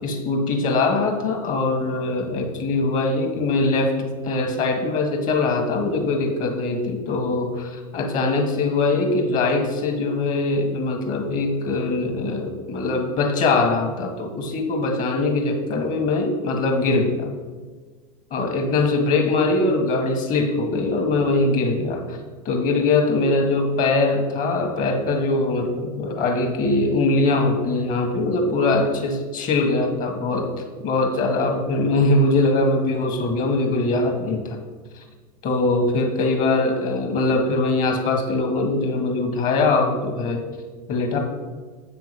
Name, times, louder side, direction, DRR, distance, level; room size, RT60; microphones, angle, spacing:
voice 1, 0.0-17.3 18.3-22.2 22.4-30.4 30.8-34.6 35.0-35.1 35.4-40.4 40.9-41.2, left 3 dB, 45° left, 3 dB, 1.7 m, -22 dB
8.0 x 6.0 x 5.3 m, 1.4 s
hypercardioid pair, 100°, 19 cm